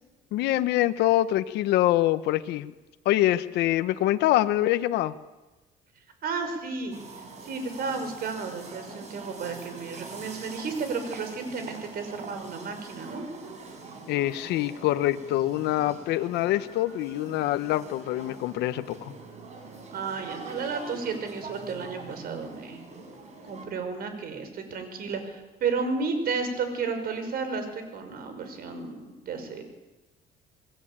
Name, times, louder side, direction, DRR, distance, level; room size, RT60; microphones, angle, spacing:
voice 1, 0.3-2.7 3.0-5.1 14.1-19.1, left 14 dB, 85° left, 11 dB, 1.0 m, -25 dB
voice 2, 6.2-7.0 7.4-13.2 19.9-22.8 23.4-29.6, right 4 dB, 60° right, 8 dB, 5.8 m, -32 dB
sound 1, 6.9-23.7, right 3 dB, 40° right, 6.6 m, -44 dB
28.0 x 20.0 x 8.9 m, 1.1 s
cardioid pair, 110°, 17 cm